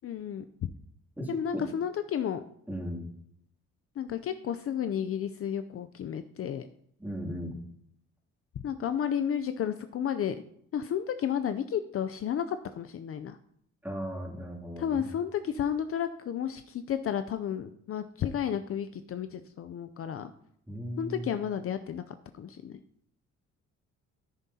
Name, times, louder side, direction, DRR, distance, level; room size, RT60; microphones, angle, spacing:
voice 1, 0.0-0.4 1.3-2.4 4.0-6.7 8.6-10.4 10.7-13.4 14.8-20.3 21.0-22.8, left 9 dB, 50° left, 10 dB, 0.5 m, -32 dB
voice 2, 1.2-1.7 2.7-3.1 7.0-7.5 13.8-15.1 20.7-21.3, equal, 5° right, -2 dB, 2.7 m, -36 dB
13.5 x 7.1 x 2.8 m, 0.69 s
cardioid pair, 90°, 30 cm